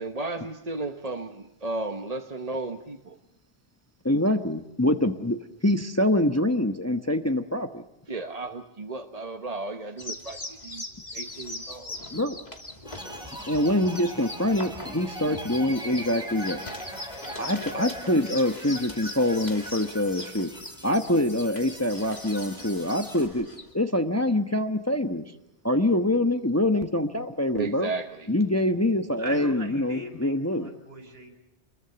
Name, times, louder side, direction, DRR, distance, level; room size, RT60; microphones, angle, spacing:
voice 1, 0.0-3.2 8.1-10.8 11.1-12.0 27.5-28.3, right 3 dB, 35° right, 6 dB, 1.2 m, -34 dB
voice 2, 4.0-5.4 5.6-7.8 12.1-12.4 13.5-16.6 17.4-20.5 20.8-23.5 23.7-25.2 25.6-27.9 28.3-30.7, left 1 dB, 15° left, 7 dB, 1.1 m, -25 dB
sound 1, 10.0-23.7, left 1 dB, 40° left, 3.2 m, -41 dB
sound 2, 12.9-23.3, right 1 dB, 5° right, 6.3 m, -41 dB
voice 3, 29.2-31.3, right 1 dB, 60° right, 6 dB, 4.9 m, -40 dB
27.5 x 22.5 x 7.0 m, 0.89 s
omnidirectional pair, 1.1 m